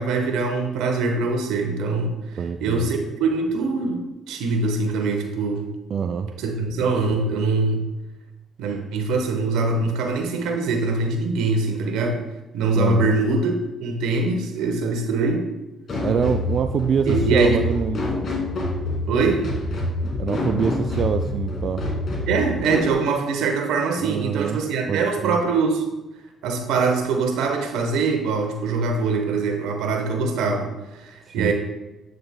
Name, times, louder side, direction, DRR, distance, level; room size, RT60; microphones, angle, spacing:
voice 1, 0.0-5.7 6.4-7.9 8.6-12.2 12.5-15.5 17.1-17.6 19.1-19.5 22.3-25.9 26.4-31.5, right 3 dB, 85° right, 4 dB, 1.0 m, -23 dB
voice 2, 2.4-2.9 5.9-6.3 12.7-13.2 16.0-18.1 20.2-21.9 24.0-24.6 24.9-25.4 31.3-31.5, right 7 dB, 55° right, 7 dB, 0.3 m, -25 dB
sound 1, 15.9-22.9, left 1 dB, 50° left, 2.2 m, -26 dB
8.6 x 6.4 x 2.2 m, 1.0 s
supercardioid pair, 75°, 0 cm